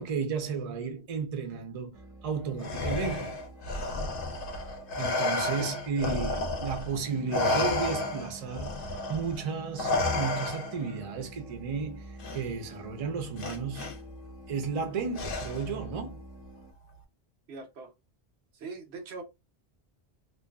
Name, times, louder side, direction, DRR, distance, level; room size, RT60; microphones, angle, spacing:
voice 1, 0.0-3.4 5.0-8.7 9.1-13.9 14.5-16.2, right 5 dB, 45° right, 0.6 m, -33 dB
sound 1, 1.9-16.7, right 2 dB, 5° right, 0.7 m, -48 dB
Respiratory sounds, 2.6-7.0 7.3-10.9 12.2-12.4 13.4-13.9 15.2-15.8, left 2 dB, 65° left, 0.8 m, -31 dB
voice 2, 17.5-17.9 18.5-19.2, right 4 dB, 85° right, 1.0 m, -41 dB
2.5 x 2.3 x 2.2 m
omnidirectional pair, 1.1 m